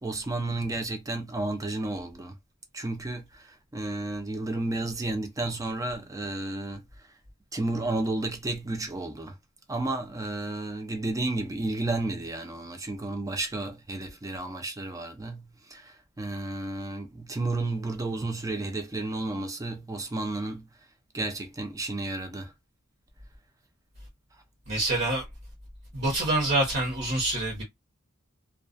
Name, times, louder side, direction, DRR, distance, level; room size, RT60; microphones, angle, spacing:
voice 1, 0.0-2.4 2.7-7.1 7.5-9.4 9.7-20.7 21.1-22.5, right 2 dB, 15° right, 0.4 m, -32 dB
voice 2, 24.7-25.2 25.9-27.6, right 1 dB, 50° right, 0.9 m, -26 dB
2.3 x 2.2 x 2.5 m
head